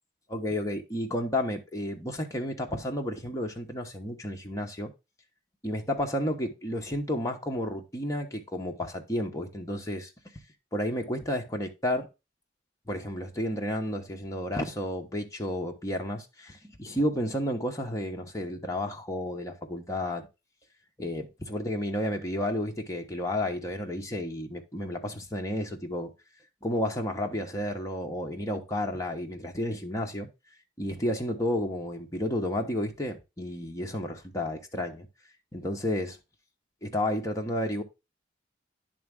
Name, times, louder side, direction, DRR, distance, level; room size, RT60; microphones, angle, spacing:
voice 1, 0.3-4.9 5.6-10.1 10.7-12.1 12.9-20.3 21.0-26.1 26.6-30.3 30.8-35.1 35.5-36.2 36.8-37.8, left 1 dB, 15° left, 0.9 m, -31 dB
10.0 x 3.6 x 3.5 m
head